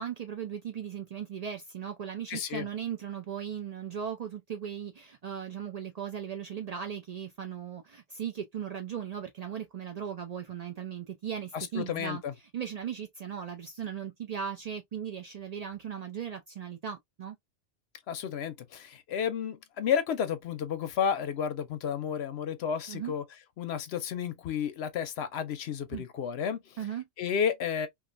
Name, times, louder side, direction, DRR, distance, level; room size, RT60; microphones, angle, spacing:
voice 1, 0.0-12.2 12.5-17.4 22.9-23.1 25.9-26.0 26.8-27.1, right 8 dB, 70° right, 0.3 m, -37 dB
voice 2, 2.3-2.7 11.5-12.3 18.1-23.2 23.6-26.8 27.2-27.9, left 8 dB, 65° left, 0.7 m, -32 dB
3.0 x 2.4 x 2.5 m
omnidirectional pair, 1.3 m